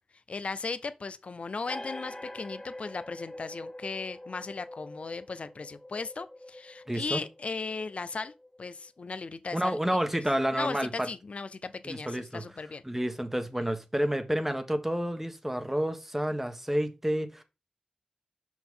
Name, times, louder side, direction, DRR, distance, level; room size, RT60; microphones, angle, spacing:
voice 1, 0.3-9.8 10.1-10.2 10.5-12.8, left 4 dB, 65° left, 0.6 m, -37 dB
sound 1, 1.7-8.9, left 1 dB, 25° left, 0.8 m, -45 dB
voice 2, 6.9-7.2 9.5-11.1 11.8-12.4 12.8-17.4, equal, 15° right, 1.4 m, -29 dB
6.1 x 5.9 x 3.8 m
cardioid pair, 40°, 2 cm